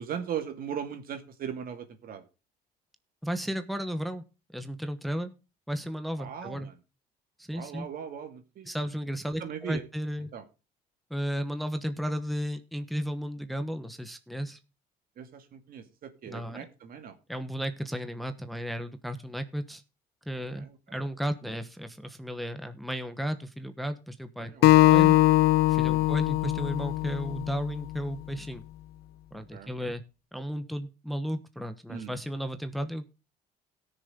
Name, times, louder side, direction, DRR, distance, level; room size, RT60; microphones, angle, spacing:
voice 1, 0.0-2.2 6.2-6.7 7.5-8.7 9.4-9.8 10.3-10.4 15.2-17.1 20.5-20.7 24.4-25.2 25.9-26.1 29.5-29.7 31.9-32.1, right 8 dB, 60° right, 8 dB, 2.2 m, -39 dB
voice 2, 3.2-4.2 4.5-5.3 5.7-6.7 7.4-7.9 8.6-10.3 11.1-14.6 16.3-16.7 17.3-19.8 20.3-20.7 20.9-25.2 25.7-28.6 29.3-30.0 30.3-33.1, equal, ahead, 8 dB, 1.1 m, -34 dB
Acoustic guitar, 24.6-27.9, left 17 dB, 70° left, 0.5 m, -21 dB
17.5 x 6.8 x 3.6 m, 0.30 s
cardioid pair, 110°, 17 cm